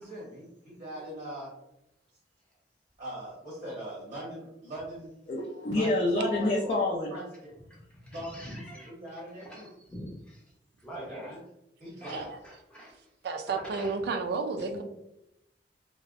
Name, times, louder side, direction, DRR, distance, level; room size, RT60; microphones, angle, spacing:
voice 1, 0.0-1.5 3.0-5.1 5.7-6.8 7.1-7.5 8.1-9.7 10.9-11.4 11.8-12.3, equal, 35° right, -5 dB, 0.7 m, -41 dB
voice 2, 0.9-1.2 4.1-4.2 7.7-8.9 9.4-10.4 10.8-11.4 12.0-13.0 13.8-13.9, equal, 5° left, -4 dB, 0.7 m, -44 dB
voice 3, 5.3-7.1 14.6-14.8, left 1 dB, 40° left, -4 dB, 0.4 m, -28 dB
voice 4, 12.1-12.4 13.2-14.8, right 4 dB, 65° right, 5 dB, 0.3 m, -32 dB
2.5 x 2.0 x 2.4 m, 0.83 s
head